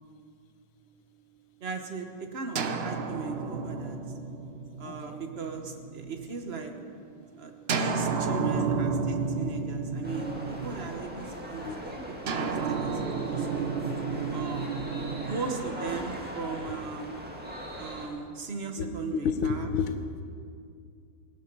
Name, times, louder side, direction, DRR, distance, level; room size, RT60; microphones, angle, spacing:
voice 1, 1.6-4.0 4.8-6.7 7.4-12.0 12.2-13.7 14.3-14.9 15.3-17.1 17.8-19.7, right 4 dB, 40° right, 5 dB, 1.0 m, -38 dB
sound 1, 2.5-6.3 7.7-11.2 12.3-16.4, right 5 dB, 85° right, 0.5 m, -32 dB
voice 2, 4.8-5.2 11.3-11.8 12.5-12.6 16.7-16.8 18.8-20.2, left 6 dB, 75° left, 8 dB, 1.7 m, -32 dB
sound 2, 10.0-18.1, equal, 5° right, 1.6 m, -39 dB
18.0 x 12.5 x 5.4 m, 2.3 s
omnidirectional pair, 2.3 m